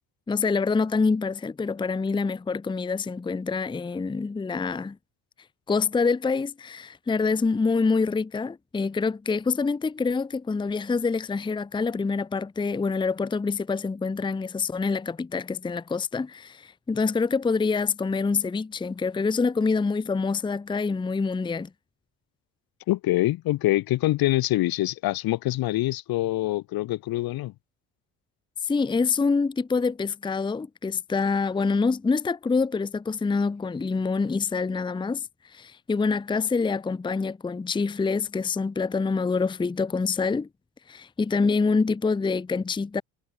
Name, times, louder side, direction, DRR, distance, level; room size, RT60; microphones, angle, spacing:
voice 1, 0.3-5.0 5.7-21.7 28.6-40.5 40.9-43.0, left 4 dB, 10° left, 0.7 m, -26 dB
voice 2, 22.9-27.5, left 17 dB, 65° left, 1.2 m, -25 dB
supercardioid pair, 95°, 39 cm